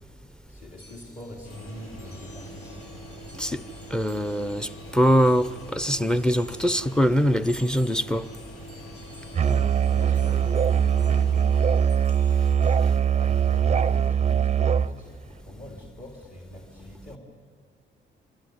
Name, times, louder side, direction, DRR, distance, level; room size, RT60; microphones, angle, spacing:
voice 1, 0.5-3.0 9.4-11.6 13.1-17.2, left 1 dB, 45° left, 3.6 m, -43 dB
sound 1, 0.8-12.8, left 2 dB, 65° left, 4.5 m, -53 dB
sound 2, 1.4-12.5, equal, 80° left, 7.8 m, -43 dB
voice 2, 3.9-8.3 9.5-9.6, equal, 5° left, 0.7 m, -23 dB
Musical instrument, 9.3-14.9, right 8 dB, 35° right, 0.6 m, -21 dB
25.0 x 24.5 x 9.5 m
cardioid pair, 90°, 20 cm